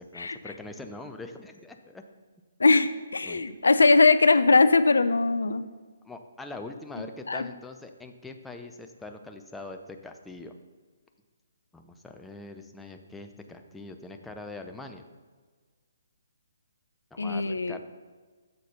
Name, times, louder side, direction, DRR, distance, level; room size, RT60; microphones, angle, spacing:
voice 1, 0.0-2.1 3.2-3.4 6.0-10.5 11.7-15.1 17.1-17.8, left 2 dB, 5° left, 5 dB, 0.4 m, -43 dB
voice 2, 2.6-5.6 7.3-7.5 17.2-17.8, left 3 dB, 75° left, 13 dB, 0.3 m, -21 dB
6.5 x 4.1 x 5.6 m, 1.5 s
figure-of-eight pair, 135°, 0 cm